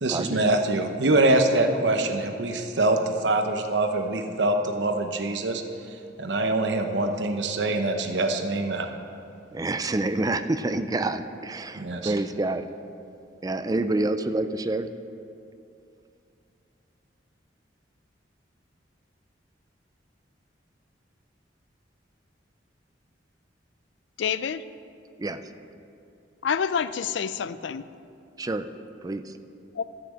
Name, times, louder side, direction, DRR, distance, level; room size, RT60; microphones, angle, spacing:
voice 1, 0.0-5.6 6.2-8.9 11.8-12.1, right 2 dB, 75° right, 5 dB, 0.9 m, -24 dB
voice 2, 9.5-12.7 13.4-14.9 25.2-25.4 28.4-28.7 29.0-29.4, right 2 dB, 20° right, 10 dB, 0.4 m, -27 dB
voice 3, 24.2-24.7 26.4-27.9 29.7-29.8, left 7 dB, 80° left, 15 dB, 0.4 m, -27 dB
13.5 x 6.0 x 7.4 m, 2.6 s
head